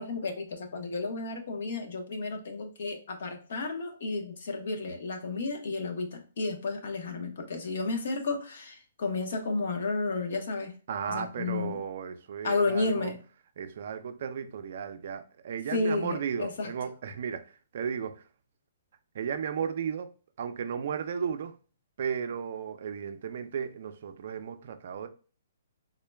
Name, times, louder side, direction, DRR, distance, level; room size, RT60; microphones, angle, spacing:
voice 1, 0.0-10.7 11.1-11.8 12.4-13.2 15.7-16.7, left 3 dB, 60° left, 0.9 m, -32 dB
voice 2, 10.9-13.1 13.6-17.5 17.7-18.2 19.1-20.1 20.4-21.5 22.0-25.1, right 7 dB, 50° right, 0.4 m, -34 dB
3.7 x 2.2 x 3.3 m
hypercardioid pair, 170°, 0 cm